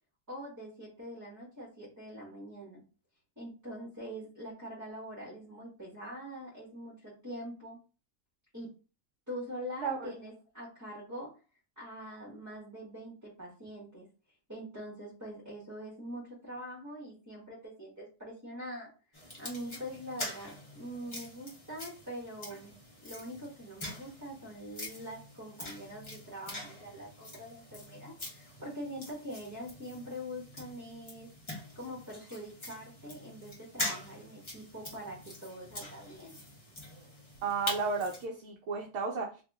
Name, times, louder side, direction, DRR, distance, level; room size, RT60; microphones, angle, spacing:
voice 1, 0.3-2.8 3.4-7.8 8.5-8.7 9.3-11.3 11.8-14.1 14.5-22.7 23.0-31.3 31.7-36.4, equal, 15° right, -6 dB, 1.1 m, -44 dB
voice 2, 9.8-10.1 37.4-39.4, right 5 dB, 65° right, 0 dB, 0.9 m, -33 dB
sound 1, 19.1-38.3, left 1 dB, 25° left, 1.0 m, -44 dB
2.8 x 2.6 x 3.5 m, 0.33 s
omnidirectional pair, 1.4 m